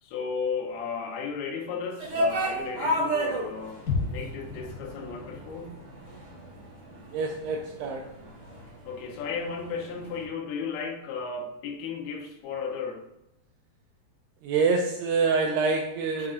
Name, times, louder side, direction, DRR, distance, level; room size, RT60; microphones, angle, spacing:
voice 1, 0.0-5.8 8.9-13.1 16.2-16.3, left 5 dB, 75° left, 1 dB, 2.5 m, -34 dB
sound 1, 2.0-10.2, equal, 35° right, 1.7 m, -33 dB
sound 2, 3.9-7.8 8.1-8.2, left 4 dB, 50° left, 2.6 m, -36 dB
voice 2, 7.1-8.0 14.4-16.3, right 4 dB, 85° right, 2 dB, 2.4 m, -26 dB
6.5 x 5.7 x 2.5 m, 0.87 s
omnidirectional pair, 5.1 m